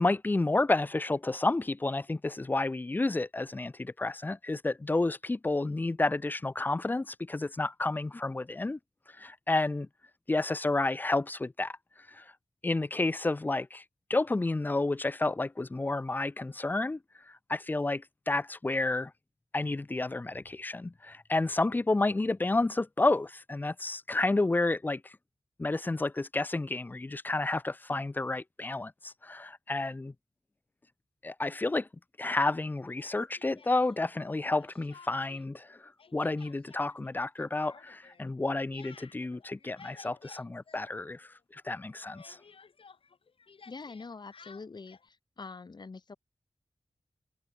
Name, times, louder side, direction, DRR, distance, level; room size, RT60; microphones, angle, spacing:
voice 1, 0.0-8.8 9.2-9.9 10.3-11.8 12.1-12.3 12.6-13.8 14.1-17.0 17.3-19.1 19.5-25.1 25.6-30.1 31.2-31.9 32.2-42.4, left 2 dB, 20° left, 0.3 m, -30 dB
Speech, 33.0-34.3 34.6-35.5 35.7-41.4 41.7-45.1, left 5 dB, 80° left, 2.8 m, -55 dB
voice 2, 43.7-46.2, left 4 dB, 50° left, 1.4 m, -45 dB
wide cardioid pair, 65°, 9 cm